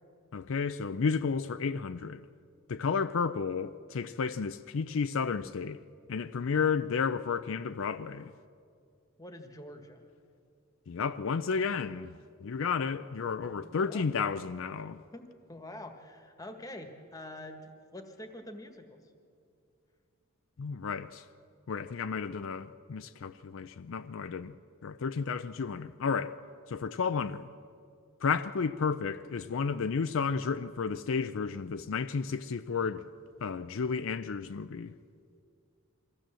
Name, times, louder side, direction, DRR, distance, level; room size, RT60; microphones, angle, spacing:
voice 1, 0.3-2.2 2.7-5.8 6.1-8.3 10.9-12.1 12.4-15.0 20.6-21.2 21.7-24.5 24.8-26.3 26.7-27.5 28.2-33.0 33.4-34.9, left 5 dB, 65° left, 0.4 m, -32 dB
voice 2, 9.2-10.0 13.5-14.1 14.8-19.0, left 1 dB, 15° left, 1.5 m, -46 dB
23.0 x 15.5 x 7.6 m
head